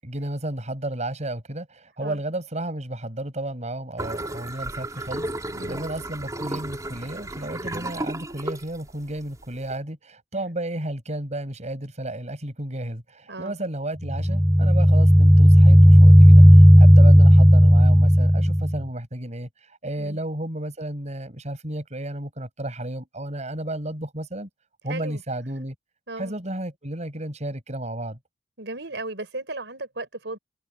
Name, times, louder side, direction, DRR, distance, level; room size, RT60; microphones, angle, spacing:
voice 1, 0.0-16.5 16.8-24.5 24.8-25.8 26.2-28.2, right 1 dB, 40° right, 7.3 m, -32 dB
sound 1, 4.0-9.7, right 1 dB, 20° right, 3.8 m, -33 dB
sound 2, 14.1-18.8, equal, ahead, 0.4 m, -12 dB
voice 2, 24.9-25.2 26.1-26.3 28.6-30.4, right 2 dB, 75° right, 5.7 m, -35 dB
open air
head